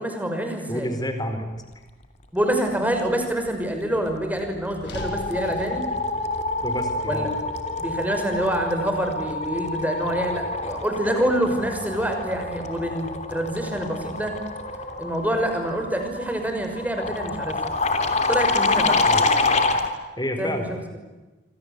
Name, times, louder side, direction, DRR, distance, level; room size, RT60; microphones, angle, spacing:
voice 1, 0.0-0.9 2.3-5.9 7.1-7.3 7.8-14.3 15.0-17.6 18.3-19.0 20.4-21.0, right 1 dB, 10° right, 4 dB, 5.9 m, -26 dB
voice 2, 0.7-1.5 6.6-7.3 19.1-19.3 20.2-21.0, equal, 20° left, 7 dB, 4.5 m, -29 dB
sound 1, 4.1-4.4 4.7-19.9, left 3 dB, 35° left, 3.2 m, -27 dB
sound 2, 4.8-9.1, equal, 65° left, 6.6 m, -42 dB
27.0 x 26.5 x 8.3 m, 1.2 s
head